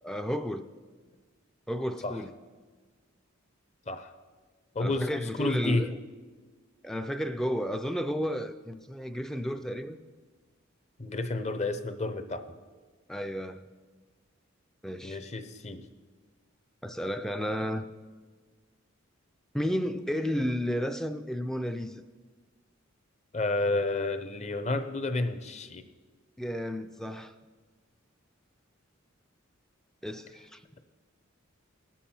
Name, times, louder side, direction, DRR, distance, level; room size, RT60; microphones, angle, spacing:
voice 1, 0.0-0.7 1.7-2.3 4.8-5.9 6.8-10.0 13.1-13.7 14.8-15.2 16.8-17.9 19.5-22.0 26.4-27.3 30.0-30.6, equal, ahead, 0.3 m, -32 dB
voice 2, 4.7-5.9 11.0-12.4 15.0-15.9 23.3-25.8, left 2 dB, 35° left, 0.7 m, -30 dB
18.5 x 7.3 x 4.3 m
head